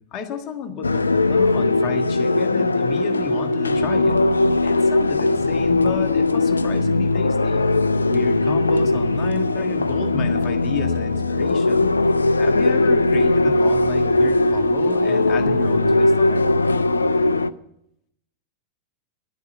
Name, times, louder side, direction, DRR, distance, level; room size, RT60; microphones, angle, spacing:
voice 1, 0.1-4.2 4.6-7.6 8.1-11.9 12.4-16.4, left 7 dB, 35° left, 5 dB, 1.6 m, -32 dB
sound 1, 0.8-17.5, left 2 dB, 75° left, 0.4 m, -19 dB
11.5 x 8.2 x 9.0 m, 0.79 s
figure-of-eight pair, 90°, 0 cm